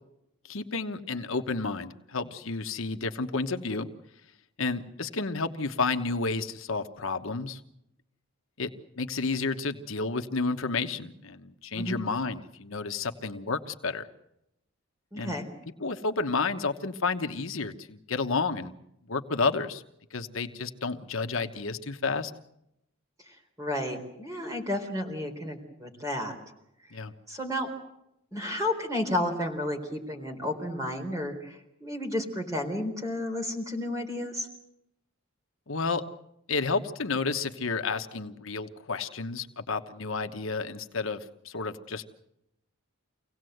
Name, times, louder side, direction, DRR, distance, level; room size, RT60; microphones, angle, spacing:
voice 1, 0.4-3.9 4.6-7.6 8.6-8.7 9.0-14.1 15.1-15.3 15.8-18.7 19.1-19.8 20.1-22.3 26.9-27.1 35.7-36.0 36.5-42.1, left 4 dB, 70° left, 7 dB, 1.1 m, -31 dB
voice 2, 15.1-15.5 23.3-26.4 27.3-27.7 28.3-34.5, left 1 dB, 15° right, 3 dB, 3.9 m, -32 dB
25.5 x 17.5 x 7.9 m, 0.82 s
head